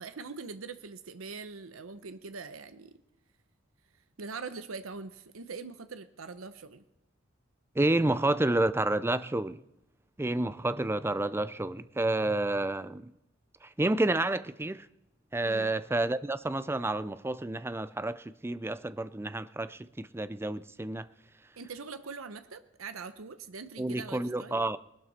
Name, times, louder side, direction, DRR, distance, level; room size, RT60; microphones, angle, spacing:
voice 1, 0.0-3.0 4.2-6.8 15.4-15.7 21.6-24.6, right 4 dB, 90° right, 0.8 m, -42 dB
voice 2, 7.8-9.6 10.2-13.1 13.6-14.9 15.3-21.1 23.8-24.8, right 2 dB, 10° right, 0.4 m, -30 dB
20.0 x 12.0 x 4.3 m
head